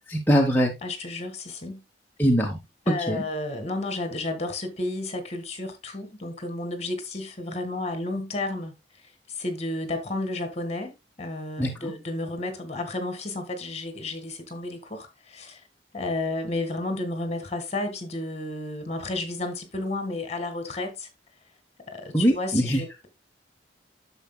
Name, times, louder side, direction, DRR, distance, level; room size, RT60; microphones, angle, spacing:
voice 1, 0.1-0.7 2.2-2.6 2.9-3.2 11.6-11.9 22.1-22.8, equal, 10° left, 1.1 m, -22 dB
voice 2, 0.8-1.8 2.9-8.7 9.4-10.9 11.2-15.6 15.9-21.1 21.9-23.1, left 2 dB, 35° left, 1.8 m, -32 dB
10.0 x 7.0 x 2.2 m
head